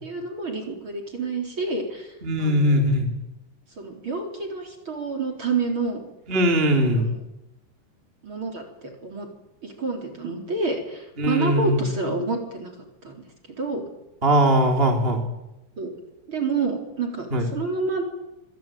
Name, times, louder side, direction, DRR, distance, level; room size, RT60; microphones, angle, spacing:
voice 1, 0.0-2.1 2.4-2.9 3.8-6.0 7.0-7.2 8.2-9.3 9.6-12.7 13.0-13.2 13.6-13.8 15.8-15.9 16.3-18.0, right 3 dB, 30° right, 3 dB, 4.1 m, -28 dB
voice 2, 2.2-3.1 6.3-7.1 11.2-11.9 14.2-15.2 17.3-17.5, equal, 15° right, 2 dB, 3.2 m, -20 dB
25.5 x 24.0 x 9.3 m, 0.94 s
omnidirectional pair, 5.2 m